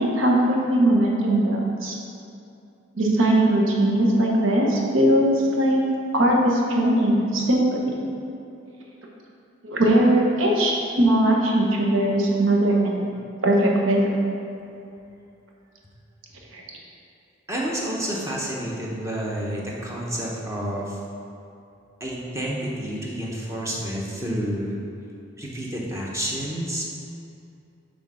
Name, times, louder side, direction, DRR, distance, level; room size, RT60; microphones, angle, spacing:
voice 1, 0.0-1.9 2.9-5.8 6.1-8.1 9.6-13.1 13.4-14.1 16.5-16.6, right 1 dB, 75° right, -1 dB, 1.0 m, -20 dB
voice 2, 17.5-21.0 22.0-24.8 25.4-26.9, equal, 15° right, -4 dB, 0.8 m, -29 dB
6.3 x 3.6 x 6.2 m, 2.7 s
head